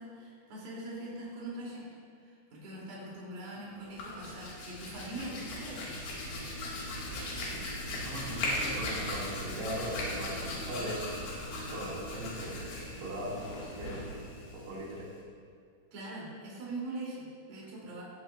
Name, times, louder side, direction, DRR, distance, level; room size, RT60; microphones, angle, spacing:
voice 1, 0.0-1.9 2.2-5.9 15.9-18.0, right 2 dB, 45° right, -6 dB, 5.5 m, -42 dB
Hands, 3.8-15.2, left 1 dB, 65° left, 4.9 m, -38 dB
voice 2, 7.5-11.0 11.7-12.5 12.8-14.0 14.5-15.1, right 1 dB, 85° right, -7 dB, 5.8 m, -40 dB
18.5 x 16.0 x 2.8 m, 2.3 s
omnidirectional pair, 5.7 m